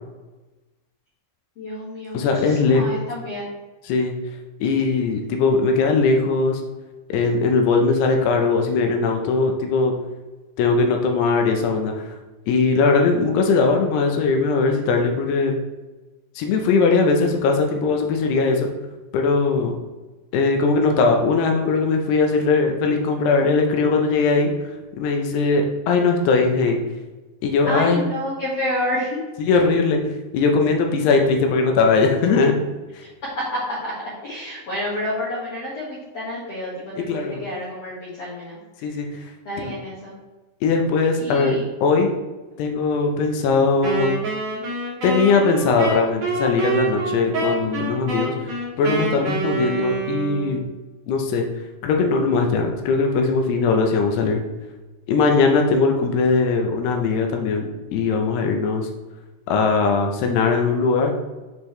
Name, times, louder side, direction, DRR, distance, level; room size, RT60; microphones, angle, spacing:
voice 1, 1.6-3.4 5.1-5.4 27.6-29.2 29.5-29.6 33.8-33.9 34.2-38.6 38.9-39.1 39.4-40.1 41.2-41.6, left 1 dB, 50° left, -8 dB, 2.0 m, -29 dB
voice 2, 2.1-2.8 3.9-4.1 4.6-6.6 7.1-9.9 10.6-12.2 12.5-15.5 16.4-18.7 19.1-19.7 20.3-24.5 25.0-26.8 27.4-28.1 29.4-30.0 30.3-32.6 32.9-33.0 37.1-37.4 38.8-39.1 39.6-39.8 40.6-42.1 42.6-44.2 45.0-48.5 48.8-50.6 51.1-51.4 51.8-54.4 55.1-58.9 59.5-61.1, left 4 dB, 75° left, 3 dB, 2.7 m, -20 dB
Wind instrument woodwind instrument, 43.8-50.7, right 3 dB, 40° right, 1.5 m, -27 dB
7.4 x 5.1 x 3.2 m, 1.2 s
omnidirectional pair, 5.2 m